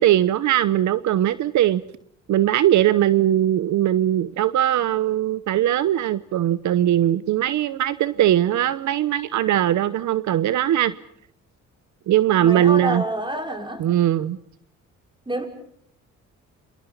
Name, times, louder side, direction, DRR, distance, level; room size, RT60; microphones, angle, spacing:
voice 1, 0.0-1.8 2.3-10.9 12.1-13.0 13.8-14.4, right 12 dB, 70° right, 15 dB, 0.9 m, -20 dB
voice 2, 12.4-13.9 15.3-15.4, right 1 dB, 15° right, 5 dB, 5.7 m, -28 dB
29.0 x 26.0 x 5.6 m, 0.65 s
cardioid pair, 90°, 30 cm